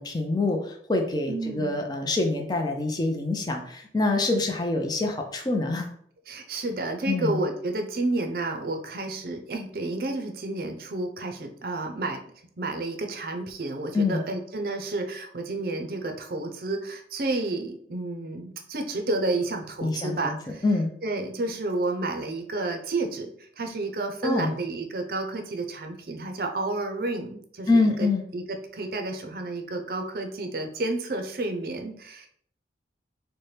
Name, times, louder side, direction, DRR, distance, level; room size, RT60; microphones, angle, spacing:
voice 1, 0.0-5.9 7.1-7.4 13.9-14.2 19.8-20.4 20.6-20.9 24.2-24.5 27.7-28.2, left 2 dB, 25° left, 3 dB, 0.4 m, -25 dB
voice 2, 1.3-1.8 6.3-12.2 12.6-20.6 21.0-32.3, right 2 dB, 55° right, 4 dB, 0.5 m, -31 dB
4.3 x 2.1 x 3.2 m, 0.64 s
head